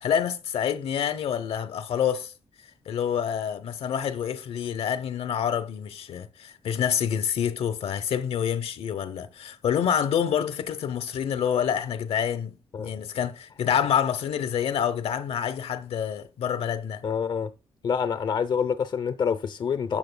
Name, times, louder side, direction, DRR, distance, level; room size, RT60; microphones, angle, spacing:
voice 1, 0.0-2.3 2.9-17.0, left 8 dB, 80° left, 0.8 m, -27 dB
voice 2, 17.0-17.5 17.8-20.0, left 6 dB, 50° left, 0.6 m, -27 dB
12.0 x 8.0 x 2.2 m
wide cardioid pair, 140°, 10 cm